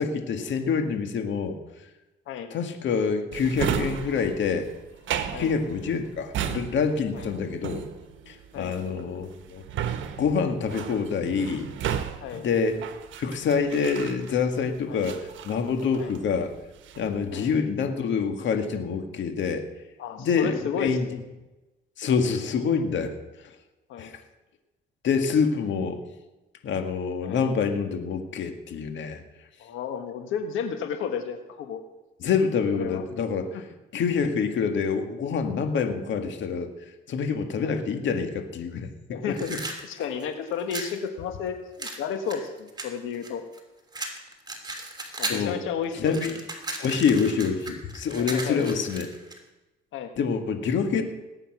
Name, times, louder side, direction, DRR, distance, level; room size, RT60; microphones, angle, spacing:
voice 1, 0.0-1.6 2.5-4.7 5.4-7.9 8.3-9.6 10.2-11.7 12.3-12.8 13.2-16.5 17.0-19.6 20.2-21.2 22.0-23.1 23.4-23.6 24.0-24.2 25.0-26.0 26.6-29.2 32.2-33.6 33.9-36.7 37.1-39.6 45.3-45.6 45.9-46.4 46.8-49.1 50.2-51.0, left 5 dB, 70° left, 6 dB, 1.9 m, -26 dB
Drawer open or close, 3.3-14.6 15.0-16.3 16.6-17.2, right 9 dB, 75° right, 1.3 m, -34 dB
voice 2, 20.0-21.2 23.9-24.1 27.2-27.4 29.6-31.8 32.8-33.0 33.5-33.6 37.6-37.8 39.1-39.5 39.8-43.4 45.2-46.2 48.1-48.6 49.9-50.1, left 7 dB, 85° left, 6 dB, 1.5 m, -32 dB
sound 1, 39.3-41.0 41.8-43.6 43.9-45.5 45.8-49.4, right 2 dB, 20° right, 3.0 m, -35 dB
19.0 x 9.0 x 6.1 m, 1.0 s
cardioid pair, 90°, 20 cm